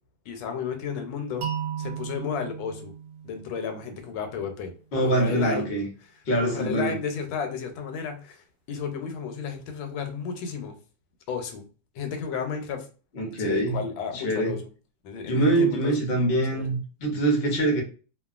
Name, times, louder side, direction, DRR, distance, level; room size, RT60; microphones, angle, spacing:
voice 1, 0.3-1.4 1.8-2.9 3.2-5.7 6.4-10.7 11.3-11.6 11.9-12.9 13.2-14.7 15.0-15.9 16.2-16.7, left 6 dB, 85° left, 1.4 m, -33 dB
sound 1, 1.4-4.3, right 8 dB, 70° right, 1.1 m, -36 dB
voice 2, 4.9-5.9 6.3-6.9 13.1-13.8 14.2-14.5 15.3-17.8, right 2 dB, 60° left, 0.6 m, -24 dB
2.9 x 2.3 x 2.3 m
omnidirectional pair, 2.1 m